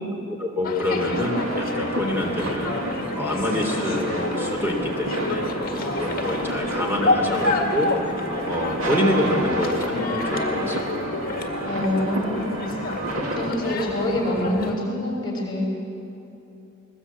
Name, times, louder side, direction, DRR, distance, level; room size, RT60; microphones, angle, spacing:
voice 1, 0.4-2.7 3.2-5.4 5.7-7.9 8.5-10.8, left 1 dB, 10° right, 1 dB, 3.3 m, -26 dB
sound 1, 0.6-14.8, left 2 dB, 45° left, 1.9 m, -30 dB
sound 2, 1.0-13.5, right 1 dB, 85° right, 2.5 m, -30 dB
voice 2, 11.6-15.7, left 1 dB, 20° left, -2 dB, 5.9 m, -26 dB
21.0 x 20.0 x 8.6 m, 2.9 s
head